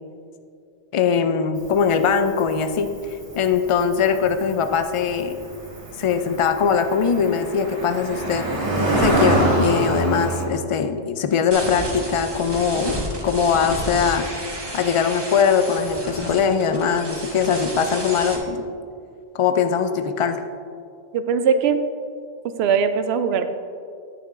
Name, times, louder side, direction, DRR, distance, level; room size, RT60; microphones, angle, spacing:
voice 1, 0.9-2.9 3.4-5.4 6.0-8.5 9.0-14.3 14.7-18.6 19.3-20.4, left 6 dB, 55° left, 8 dB, 0.3 m, -21 dB
Cricket, 1.6-10.5, right 1 dB, 45° right, 1.8 m, -25 dB
sound 1, 11.5-18.4, right 1 dB, 25° right, 1.2 m, -32 dB
voice 2, 21.1-21.8 22.6-23.5, right 6 dB, 70° right, 9 dB, 0.8 m, -20 dB
9.9 x 8.9 x 2.6 m, 2.4 s
omnidirectional pair, 1.1 m